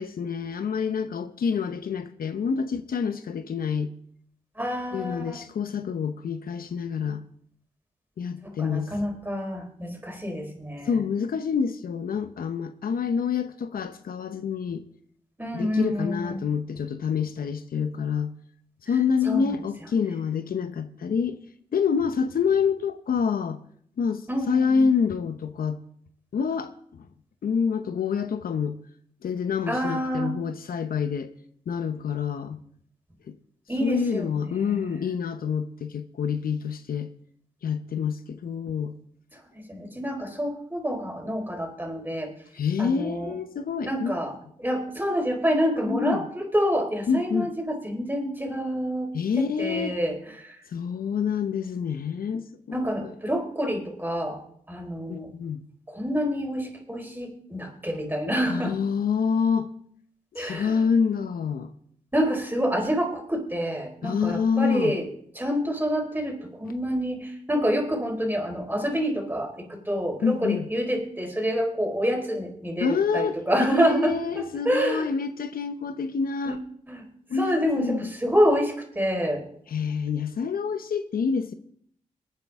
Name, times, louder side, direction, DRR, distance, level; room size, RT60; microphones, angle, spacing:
voice 1, 0.0-3.9 4.9-7.2 8.2-8.9 10.9-14.8 15.5-18.3 18.9-21.4 21.7-23.6 24.0-25.8 26.3-27.0 27.4-28.8 29.2-31.3 31.7-32.6 33.3-33.4 33.8-37.1 37.6-38.9 42.5-44.1 45.9-46.2 47.1-47.5 49.1-50.0 50.7-53.1 55.1-55.6 58.5-59.7 60.3-61.7 64.0-64.9 70.2-70.7 72.8-73.4 73.7-76.6 77.3-78.1 79.7-81.5, left 6 dB, 75° left, 0.9 m, -27 dB
voice 2, 4.6-5.4 8.4-11.0 15.4-16.5 19.2-19.5 24.3-24.9 29.7-30.4 33.7-35.2 39.3-42.3 42.8-43.4 43.8-50.6 52.7-54.4 54.7-55.3 55.9-58.8 60.3-60.8 62.1-65.1 65.3-75.1 76.5-76.6 76.9-77.0 77.3-79.4, equal, 15° right, 4.5 m, -27 dB
22.5 x 9.3 x 3.6 m
cardioid pair, 45°, 15 cm